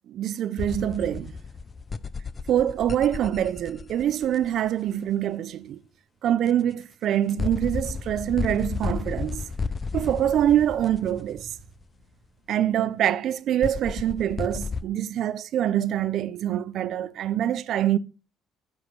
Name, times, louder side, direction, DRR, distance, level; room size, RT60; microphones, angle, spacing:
voice 1, 0.1-1.3 2.5-5.8 6.2-9.5 9.9-11.5 12.5-18.0, right 11 dB, 65° right, 0.5 m, -25 dB
sound 1, 0.6-4.7 6.5-6.6 7.3-11.8 13.6-14.8, left 4 dB, 30° left, 0.6 m, -33 dB
9.4 x 4.9 x 5.8 m
cardioid pair, 100°, 0 cm